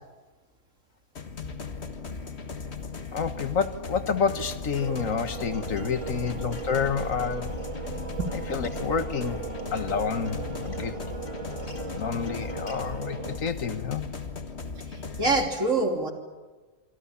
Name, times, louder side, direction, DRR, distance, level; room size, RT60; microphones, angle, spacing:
sound 1, 1.2-15.5, left 4 dB, 50° left, 1.8 m, -37 dB
voice 1, 3.1-7.6 8.3-9.5 9.7-11.0 11.9-14.0, left 6 dB, 70° left, 10 dB, 1.7 m, -29 dB
Acoustic guitar, 4.8-12.8, left 2 dB, 30° left, 3.2 m, -44 dB
sound 2, 4.8-13.4, right 5 dB, 25° right, 1.4 m, -38 dB
voice 2, 14.9-16.1, right 2 dB, 65° right, 3 dB, 3.6 m, -25 dB
26.0 x 25.5 x 7.3 m, 1.3 s
omnidirectional pair, 1.5 m